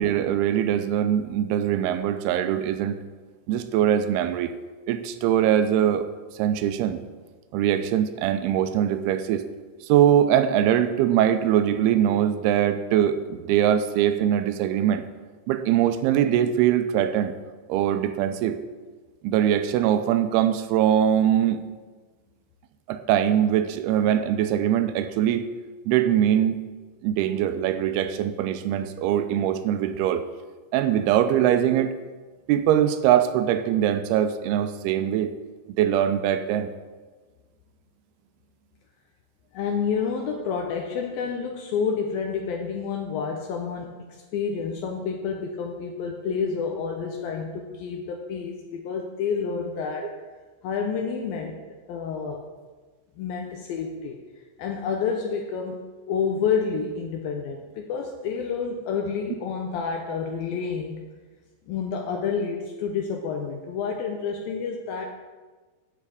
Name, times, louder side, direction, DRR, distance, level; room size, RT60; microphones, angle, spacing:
voice 1, 0.0-3.0 3.5-4.5 4.9-6.1 6.4-7.0 7.5-9.5 9.8-15.0 15.5-17.3 17.7-18.6 19.2-21.6 22.9-25.5 25.9-26.6 27.0-30.2 30.7-31.9 32.5-35.3 35.8-36.7, right 10 dB, 85° right, 10 dB, 2.6 m, -22 dB
voice 2, 39.5-50.2 50.6-51.6 51.9-52.5 53.2-54.2 54.6-61.0 61.7-65.1, left 6 dB, 75° left, 2 dB, 2.4 m, -29 dB
8.2 x 7.7 x 8.5 m, 1.4 s
omnidirectional pair, 4.6 m